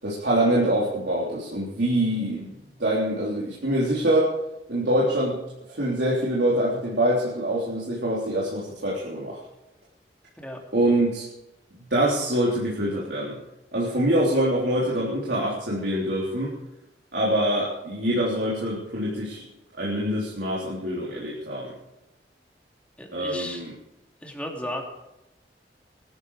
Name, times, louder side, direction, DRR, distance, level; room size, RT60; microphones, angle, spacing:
voice 1, 0.0-4.3 4.7-5.4 5.7-9.4 10.7-11.3 11.9-13.4 13.7-16.5 17.1-19.4 19.7-21.7 23.1-23.7, right 1 dB, 70° right, -6 dB, 3.7 m, -25 dB
voice 2, 23.0-23.6 24.2-24.8, left 1 dB, 5° left, 0 dB, 2.9 m, -34 dB
20.5 x 13.0 x 5.0 m, 0.92 s
head